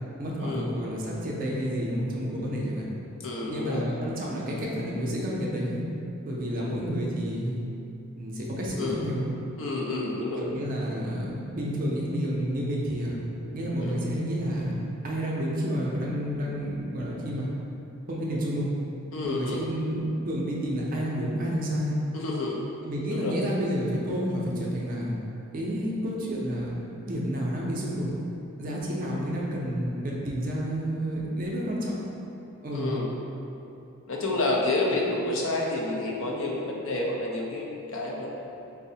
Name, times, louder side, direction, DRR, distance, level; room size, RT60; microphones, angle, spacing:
voice 1, 0.2-2.9 3.5-5.8 6.2-7.6 8.2-9.3 10.4-13.2 13.5-14.7 15.0-17.5 18.1-18.7 19.2-21.9 22.8-25.1 25.5-26.7 27.1-28.1 28.6-32.0 32.6-33.0 34.9-35.0, equal, 40° right, -4 dB, 0.4 m, -30 dB
voice 2, 3.2-3.9 6.6-6.8 8.8-9.0 9.6-10.4 13.8-13.9 19.1-19.6 22.1-22.6 23.1-23.4 29.0-29.2 32.7-33.1 34.1-38.3, left 2 dB, 65° left, -1 dB, 0.5 m, -29 dB
4.6 x 2.0 x 2.7 m, 2.8 s
head